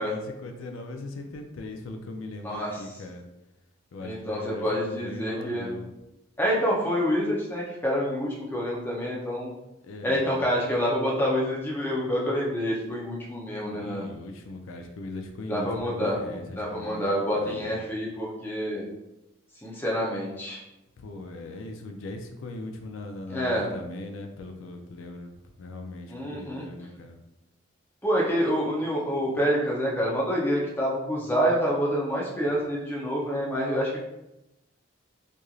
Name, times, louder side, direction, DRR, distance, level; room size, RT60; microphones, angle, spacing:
voice 1, 0.0-3.2 3.9-5.9 9.8-10.4 13.7-17.7 21.0-27.2, left 2 dB, 85° left, 4 dB, 0.4 m, -40 dB
voice 2, 2.4-2.8 4.0-5.7 6.4-9.5 10.0-14.1 15.5-16.2 16.6-18.9 19.6-20.6 23.3-23.7 26.1-26.7 28.0-34.0, equal, 10° left, -5 dB, 0.5 m, -27 dB
3.0 x 2.5 x 2.3 m, 0.94 s
head